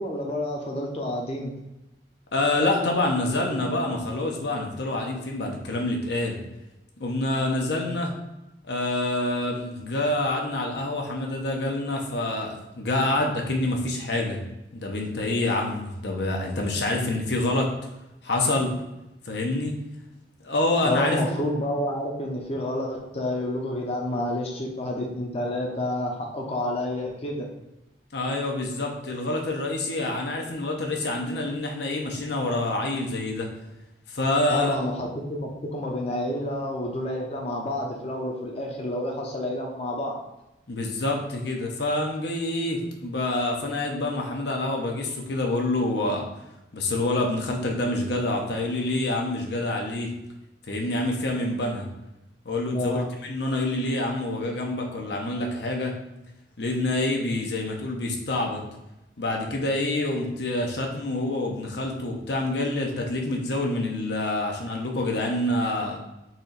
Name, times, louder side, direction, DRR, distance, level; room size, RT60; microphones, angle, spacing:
voice 1, 0.0-1.5 7.7-8.0 20.8-27.5 34.5-40.2 52.7-53.1, left 1 dB, 35° left, -1 dB, 0.7 m, -29 dB
voice 2, 2.3-6.4 7.0-8.1 8.6-14.4 14.7-17.7 18.2-18.7 19.3-19.8 20.4-21.2 28.1-33.5 34.1-34.8 40.7-46.3 46.7-50.1 50.7-51.9 52.4-55.9 56.6-58.6 59.2-66.0, left 2 dB, 70° left, 1 dB, 0.8 m, -27 dB
4.3 x 3.1 x 3.9 m, 0.93 s
head